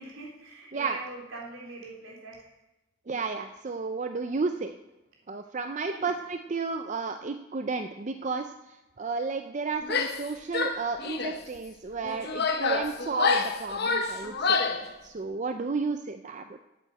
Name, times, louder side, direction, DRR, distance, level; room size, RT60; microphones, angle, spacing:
voice 1, 0.0-2.6 5.8-6.1, right 2 dB, 70° right, -3 dB, 3.6 m, -43 dB
voice 2, 3.1-4.8 5.3-14.6 15.0-16.6, right 4 dB, 35° right, 7 dB, 0.5 m, -32 dB
Female speech woman speaking / Yell, 9.8-10.3 10.5-11.4 12.0-14.9, left 4 dB, 50° left, 1.0 m, -28 dB
8.8 x 8.3 x 8.3 m, 0.99 s
head